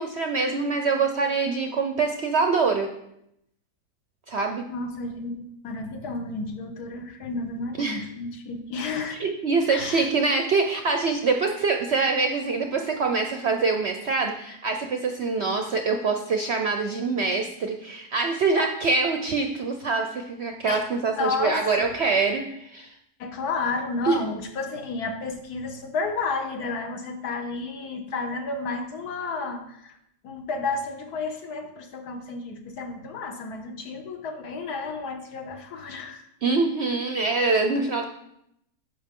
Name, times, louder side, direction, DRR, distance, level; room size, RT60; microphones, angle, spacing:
voice 1, 0.0-2.9 4.3-4.7 7.8-8.0 9.1-22.9 24.0-24.2 36.4-38.0, right 4 dB, 60° right, 4 dB, 0.7 m, -24 dB
voice 2, 4.7-9.2 9.7-10.1 20.7-20.8 21.2-22.1 23.2-30.0 30.2-36.2, left 3 dB, 70° left, 5 dB, 1.5 m, -32 dB
10.5 x 6.2 x 3.7 m, 0.79 s
omnidirectional pair, 1.8 m